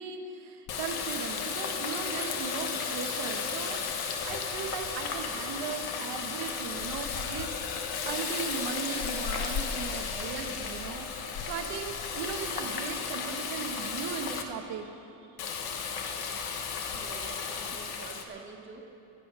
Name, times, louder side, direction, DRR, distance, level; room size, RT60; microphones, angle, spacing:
voice 1, 0.0-11.1 11.5-15.1, right 6 dB, 85° right, 5 dB, 1.5 m, -38 dB
Water tap faucet, 0.7-14.4 15.4-18.2, left 6 dB, 60° left, 1.3 m, -34 dB
voice 2, 16.9-18.8, right 5 dB, 30° right, 0 dB, 1.5 m, -47 dB
23.5 x 8.0 x 5.6 m, 3.0 s
cardioid pair, 150°, 41 cm